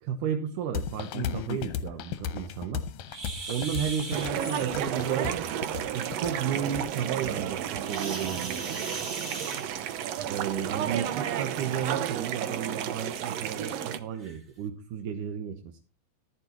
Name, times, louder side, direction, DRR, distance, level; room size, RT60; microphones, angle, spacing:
voice 1, 0.0-2.8 3.5-5.6 5.9-8.8 10.3-15.8, right 8 dB, 70° right, 5 dB, 2.3 m, -33 dB
sound 1, 0.7-8.3, left 8 dB, 70° left, 2.1 m, -36 dB
sound 2, 3.1-4.3 7.8-10.1 11.3-11.5 12.1-12.2 12.7-12.8 13.6-13.7 14.2-14.4, right 3 dB, 30° right, 1.5 m, -38 dB
sound 3, 4.1-14.0, right 10 dB, 85° right, 1.4 m, -32 dB
14.5 x 11.5 x 3.0 m, 0.33 s
omnidirectional pair, 4.1 m